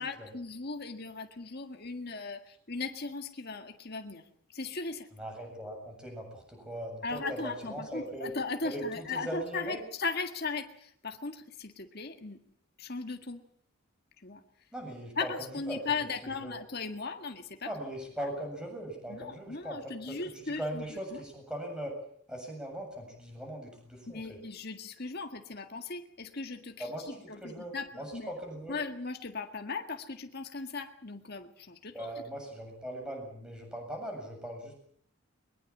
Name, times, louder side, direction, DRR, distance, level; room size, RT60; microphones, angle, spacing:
voice 1, 0.0-2.4 2.7-4.2 4.5-5.1 7.0-12.4 12.8-13.4 14.2-14.4 15.2-17.7 19.1-20.8 21.1-21.2 24.1-26.9 27.3-28.3 28.7-32.1, left 4 dB, 45° left, 6 dB, 1.8 m, -37 dB
voice 2, 5.2-8.3 8.6-9.8 14.7-15.8 16.2-16.5 17.7-21.9 22.3-24.4 26.8-28.8 31.9-34.7, right 1 dB, 5° right, 2 dB, 7.5 m, -40 dB
22.0 x 21.5 x 7.4 m, 0.63 s
head